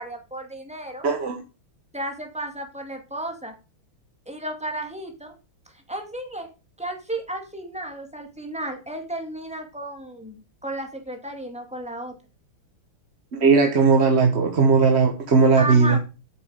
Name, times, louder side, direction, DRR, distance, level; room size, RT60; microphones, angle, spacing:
voice 1, 0.0-1.1 1.9-3.5 4.3-5.3 5.7-6.5 6.8-12.2 15.6-16.0, right 1 dB, 5° right, 4 dB, 2.0 m, -33 dB
voice 2, 1.0-1.4 13.3-16.0, right 4 dB, 40° right, 4 dB, 1.2 m, -18 dB
9.1 x 7.4 x 5.1 m, 0.31 s
omnidirectional pair, 2.3 m